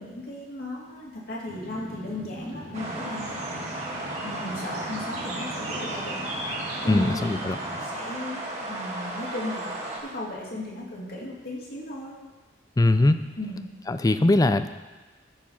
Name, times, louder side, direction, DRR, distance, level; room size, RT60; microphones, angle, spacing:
voice 1, 0.0-3.6 4.2-6.3 6.8-7.4 7.7-12.2 13.4-13.6, left 1 dB, 55° left, -4 dB, 2.5 m, -36 dB
sound 1, 1.5-7.9, equal, 80° right, 1.8 m, -41 dB
sound 2, 2.7-10.0, right 1 dB, 35° right, 1.9 m, -34 dB
voice 2, 6.9-7.6 12.8-13.2 13.9-14.7, left 2 dB, 20° left, 11 dB, 0.4 m, -21 dB
14.0 x 4.8 x 5.7 m, 1.2 s
head